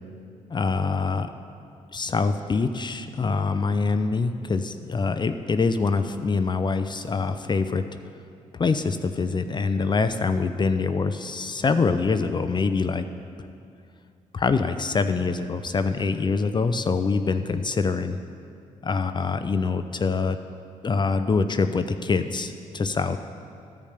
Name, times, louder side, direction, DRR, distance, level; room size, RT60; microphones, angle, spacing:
voice 1, 0.5-1.3 1.9-7.8 8.5-13.1 14.3-18.2 18.8-20.4 20.8-23.2, left 4 dB, 35° left, 9 dB, 0.5 m, -24 dB
13.0 x 5.3 x 5.1 m, 2.5 s
supercardioid pair, 65°, 14 cm